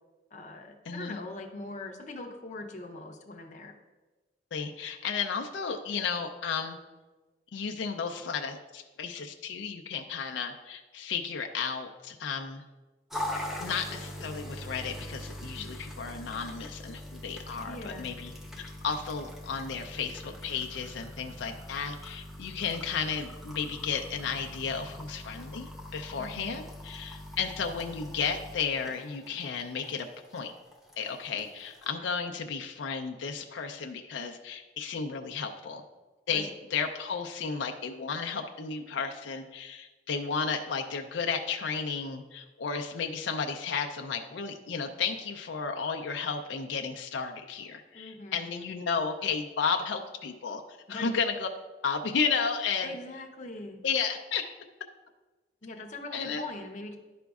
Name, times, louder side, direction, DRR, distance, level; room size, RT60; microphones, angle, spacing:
voice 1, 0.3-3.7 15.6-15.7 17.7-18.2 26.2-26.6 36.3-36.5 47.9-48.5 50.9-51.1 52.8-53.8 55.6-57.0, left 2 dB, 40° left, 2 dB, 0.6 m, -42 dB
voice 2, 0.9-1.2 4.5-6.8 7.5-12.6 13.6-30.1 30.3-30.5 31.0-35.8 36.3-50.6 50.9-51.5 51.8-52.9 53.8-54.4 56.1-56.4, left 5 dB, 80° left, 3 dB, 0.5 m, -33 dB
sound 1, 13.1-31.9, left 1 dB, ahead, 0.7 m, -42 dB
11.0 x 5.0 x 2.3 m, 1.2 s
head